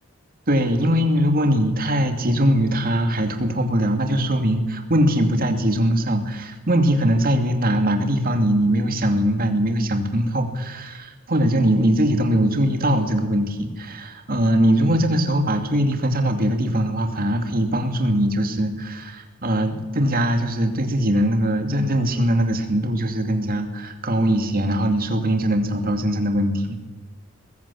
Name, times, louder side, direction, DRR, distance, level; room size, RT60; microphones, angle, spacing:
voice 1, 0.5-26.8, equal, 45° right, 5 dB, 2.5 m, -21 dB
21.5 x 14.5 x 8.5 m, 1.3 s
head